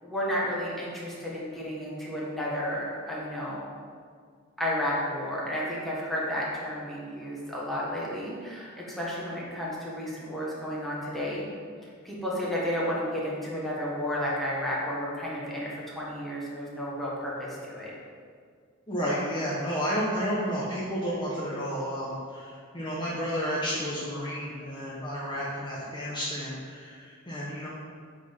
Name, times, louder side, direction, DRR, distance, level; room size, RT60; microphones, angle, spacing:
voice 1, 0.0-3.7 4.6-11.5 11.8-17.9, equal, ahead, -7 dB, 1.6 m, -32 dB
voice 2, 18.9-27.7, equal, 25° left, -6 dB, 0.9 m, -31 dB
8.1 x 4.0 x 5.4 m, 2.1 s
head